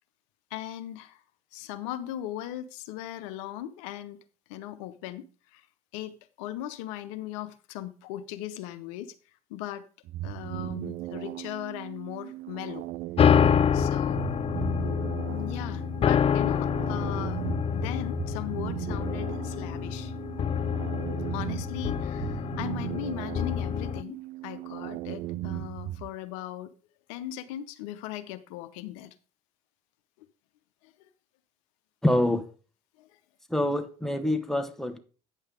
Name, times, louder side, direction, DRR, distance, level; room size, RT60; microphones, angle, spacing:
voice 1, 0.5-1.2 1.5-4.2 4.5-5.7 5.9-9.1 9.5-9.9 10.2-12.9 13.7-14.3 15.3-17.4 17.7-20.2 21.3-24.2 24.4-26.7 27.1-29.1 30.8-31.1 33.0-33.2, left 12 dB, 80° left, 0.6 m, -38 dB
sound 1, 10.0-26.1, right 15 dB, 60° right, 0.5 m, -37 dB
sound 2, 13.2-24.0, left 8 dB, 35° left, 0.4 m, -27 dB
voice 2, 32.0-32.4 33.5-35.0, left 1 dB, ahead, 1.2 m, -26 dB
9.0 x 5.6 x 4.9 m
hypercardioid pair, 65°, 16 cm